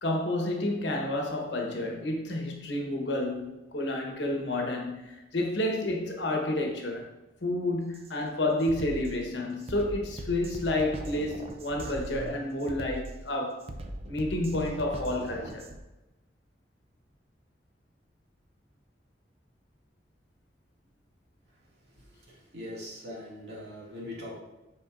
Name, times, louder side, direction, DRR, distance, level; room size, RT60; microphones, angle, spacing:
voice 1, 0.0-7.1 7.4-13.6 14.1-15.7, left 1 dB, 75° left, 1 dB, 1.0 m, -30 dB
Drum kit, 7.9-8.1 8.6-15.8, right 1 dB, 35° right, 0.5 m, -40 dB
voice 2, 22.3-24.4, left 1 dB, 65° right, -5 dB, 2.1 m, -41 dB
7.6 x 5.1 x 2.5 m, 1.0 s
head